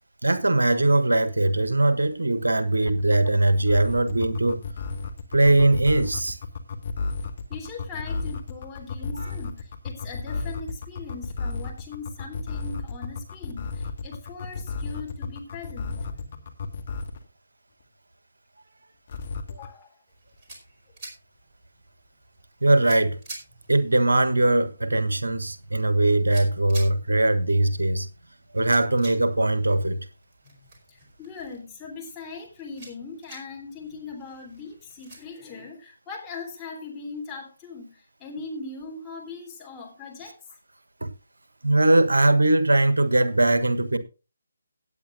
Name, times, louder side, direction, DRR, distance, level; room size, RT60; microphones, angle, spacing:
voice 1, 0.2-4.6 5.3-6.4 9.1-9.3 22.6-23.2 23.7-28.1 28.5-30.0 41.0-41.1 41.6-44.0, right 2 dB, 70° right, 1.4 m, -21 dB
sound 1, 2.9-17.3 19.1-19.7, left 4 dB, 45° left, 1.7 m, -32 dB
voice 2, 7.5-16.5 19.5-20.0 30.4-30.6 30.9-40.4, left 4 dB, 15° left, 3.3 m, -40 dB
sound 2, 20.1-35.2, right 2 dB, 25° right, 4.6 m, -49 dB
17.5 x 9.1 x 2.6 m
figure-of-eight pair, 145°, 0 cm